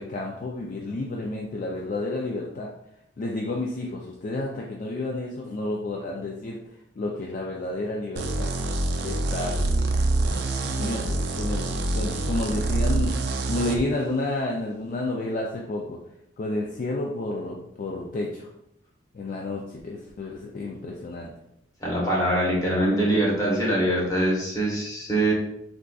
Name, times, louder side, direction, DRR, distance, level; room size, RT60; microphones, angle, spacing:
voice 1, 0.0-2.7 3.2-6.6 7.0-8.5 9.0-9.7 10.6-13.1 13.5-16.0 16.4-18.5 19.1-21.3, left 2 dB, 45° left, -1 dB, 0.3 m, -30 dB
sound 1, 8.2-13.8, right 2 dB, 60° right, 0.4 m, -26 dB
voice 2, 21.8-25.3, right 1 dB, 20° left, -4 dB, 1.0 m, -23 dB
3.8 x 2.4 x 2.3 m, 0.77 s
head